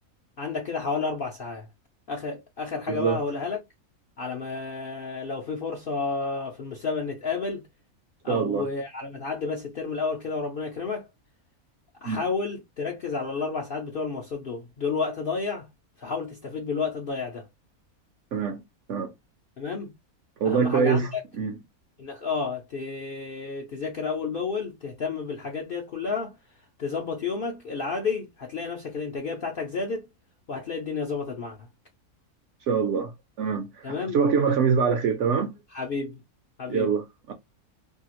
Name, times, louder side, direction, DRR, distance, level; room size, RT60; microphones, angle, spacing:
voice 1, 0.4-1.7 2.1-3.6 4.2-7.7 8.2-11.1 12.0-15.7 16.0-17.5 19.6-19.9 20.4-21.2 22.0-26.4 26.8-30.1 30.5-31.7 33.8-34.2 35.7-36.2 36.6-36.9, left 4 dB, 60° left, 0.6 m, -31 dB
voice 2, 8.3-8.7 12.1-12.2 18.3-18.6 18.9-19.1 20.4-21.1 21.3-21.6 32.7-33.1 33.4-35.6 36.7-37.0 37.3-37.4, right 6 dB, 65° right, 0.8 m, -24 dB
2.7 x 2.4 x 2.9 m
omnidirectional pair, 1.5 m